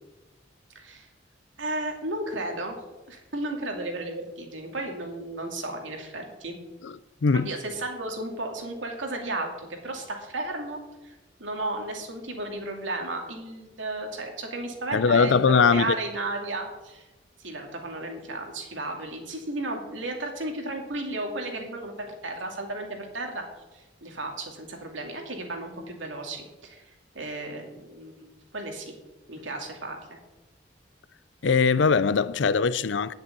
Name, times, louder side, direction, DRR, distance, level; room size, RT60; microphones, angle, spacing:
voice 1, 0.7-1.1 1.6-2.8 3.1-6.6 7.3-17.1 17.4-23.4 23.7-29.0 29.3-30.2, right 2 dB, 85° right, 2.6 m, -34 dB
voice 2, 14.9-16.0 31.4-33.1, left 5 dB, 75° left, 0.5 m, -21 dB
10.0 x 8.0 x 8.2 m
head